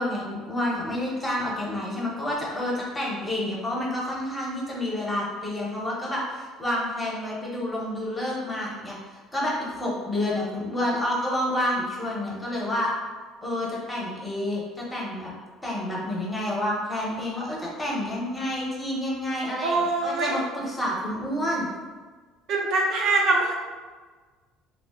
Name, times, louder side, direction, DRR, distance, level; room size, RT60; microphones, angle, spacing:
voice 1, 0.0-8.9 9.3-12.9 13.4-15.3 15.6-21.7, left 1 dB, 10° left, -4 dB, 0.6 m, -29 dB
voice 2, 19.6-20.4 22.5-23.5, right 3 dB, 50° right, -1 dB, 0.4 m, -23 dB
2.4 x 2.0 x 3.4 m, 1.4 s
cardioid pair, 150°, 0 cm